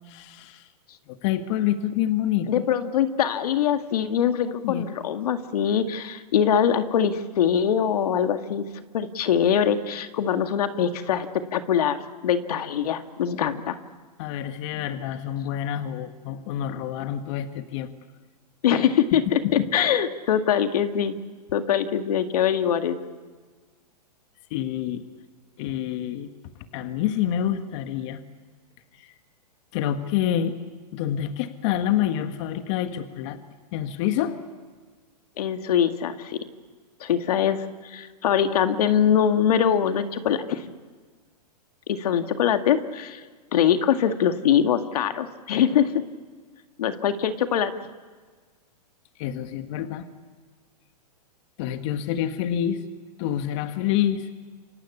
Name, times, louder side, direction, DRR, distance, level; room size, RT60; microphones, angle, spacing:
voice 1, 0.1-0.7 1.1-2.6 4.6-4.8 14.2-17.9 19.4-19.7 24.5-25.0 25.6-26.3 26.7-28.2 29.0-29.1 29.7-30.6 30.9-33.4 33.7-34.4 49.2-50.0 51.6-52.8 53.2-54.3, left 11 dB, 45° left, 8 dB, 1.7 m, -27 dB
voice 2, 2.5-8.6 8.9-11.3 11.5-13.8 18.6-21.2 21.5-23.0 35.4-36.4 37.0-40.7 41.9-43.2 43.5-46.0 46.8-47.7, left 8 dB, 65° left, 8 dB, 1.9 m, -23 dB
28.5 x 24.5 x 8.5 m, 1.5 s
hypercardioid pair, 130°, 21 cm